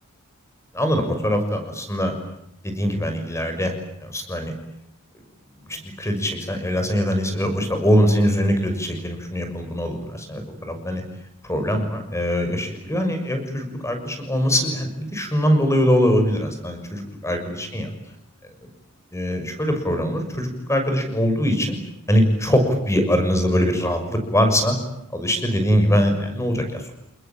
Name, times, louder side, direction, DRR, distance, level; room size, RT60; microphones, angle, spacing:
voice 1, 0.7-2.1 2.6-3.7 4.0-4.5 5.7-11.0 11.5-17.9 19.1-21.8 22.1-24.8 25.1-26.9, equal, 15° left, 6 dB, 6.5 m, -22 dB
29.5 x 21.0 x 8.9 m, 0.82 s
head